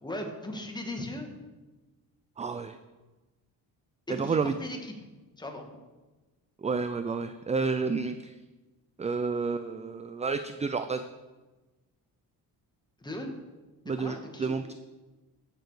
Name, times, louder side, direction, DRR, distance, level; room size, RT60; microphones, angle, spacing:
voice 1, 0.0-1.3 4.1-4.8 5.4-5.6 13.0-13.3 13.9-14.5, left 1 dB, 10° left, 3 dB, 1.8 m, -37 dB
voice 2, 2.4-2.8 4.1-4.5 6.6-8.3 9.0-11.1 13.9-14.7, right 4 dB, 20° right, 10 dB, 0.5 m, -30 dB
14.0 x 6.9 x 4.9 m, 1.2 s
cardioid pair, 110°, 36 cm